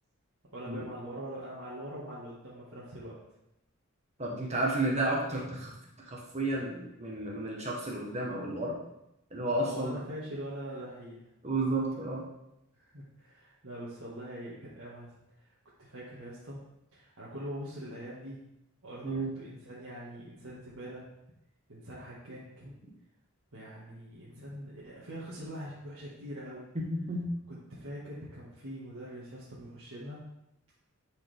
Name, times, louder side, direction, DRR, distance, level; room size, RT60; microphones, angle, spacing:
voice 1, 0.5-3.2 9.6-11.2 12.7-15.1 15.4-15.5 15.8-16.6 16.9-18.4 18.8-21.1 21.7-22.7 23.5-26.7 27.7-30.2, equal, 70° right, -8 dB, 1.7 m, -43 dB
voice 2, 4.2-5.7 6.1-8.8 9.3-10.0 11.4-12.2 19.0-19.4 26.7-27.3, right 2 dB, 30° right, -2 dB, 1.1 m, -32 dB
11.5 x 4.9 x 3.5 m, 0.86 s
head